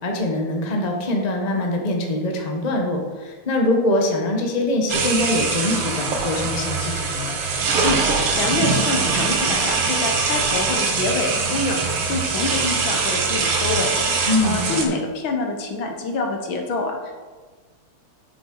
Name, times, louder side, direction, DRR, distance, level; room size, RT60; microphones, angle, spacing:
voice 1, 0.0-7.4 14.3-14.9, left 1 dB, 30° left, 1 dB, 0.8 m, -23 dB
sound 1, 4.9-14.8, right 4 dB, 85° right, 2.1 m, -22 dB
voice 2, 7.8-17.2, left 3 dB, 65° left, 3 dB, 1.7 m, -26 dB
9.2 x 7.5 x 3.8 m, 1.4 s
omnidirectional pair, 2.4 m